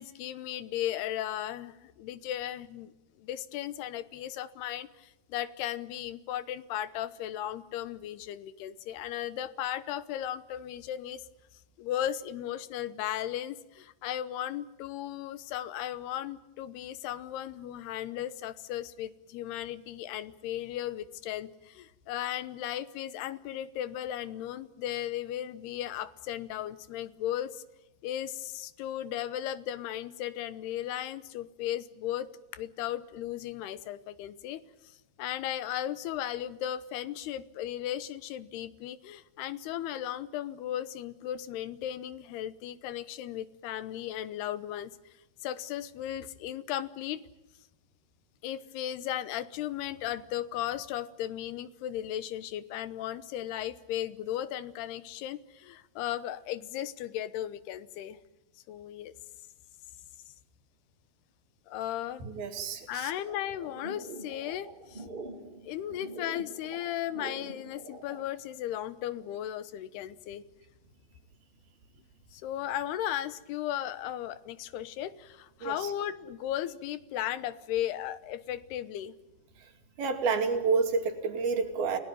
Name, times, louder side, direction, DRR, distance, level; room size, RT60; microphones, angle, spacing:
voice 1, 0.0-11.2 11.8-27.6 28.0-34.6 35.2-44.9 45.4-47.2 48.4-58.2 58.7-59.1 61.7-62.3 62.9-65.1 65.6-70.4 72.3-79.2, left 12 dB, 85° left, 15 dB, 3.1 m, -36 dB
voice 2, 62.2-63.1 75.6-75.9 80.0-82.0, right 4 dB, 70° right, 5 dB, 4.3 m, -29 dB
sound 1, 63.2-68.2, right 2 dB, 25° right, 1.2 m, -45 dB
29.5 x 18.0 x 9.2 m, 0.97 s
omnidirectional pair, 4.6 m